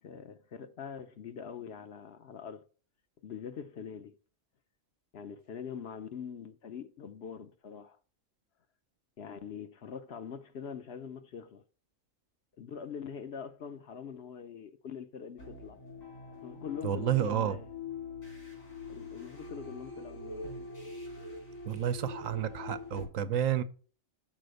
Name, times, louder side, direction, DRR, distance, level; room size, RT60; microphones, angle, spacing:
voice 1, 0.0-2.6 3.2-4.2 5.1-8.0 9.2-11.6 12.6-15.8 16.4-17.7 18.9-20.5, left 7 dB, 60° left, 0.8 m, -43 dB
sound 1, 15.4-23.1, left 3 dB, 80° left, 3.7 m, -44 dB
voice 2, 16.8-17.6 21.7-23.6, right 10 dB, 75° right, 1.0 m, -30 dB
6.2 x 4.2 x 6.5 m
omnidirectional pair, 1.4 m